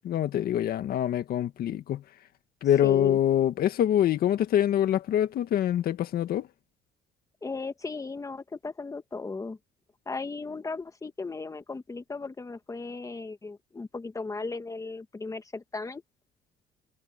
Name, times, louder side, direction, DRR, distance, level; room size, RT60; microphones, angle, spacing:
voice 1, 0.1-2.0 2.6-6.5, left 11 dB, 65° left, 1.9 m, -25 dB
voice 2, 2.8-3.2 7.4-9.6 10.0-16.0, left 3 dB, 20° left, 1.7 m, -36 dB
cardioid pair, 110°, 17 cm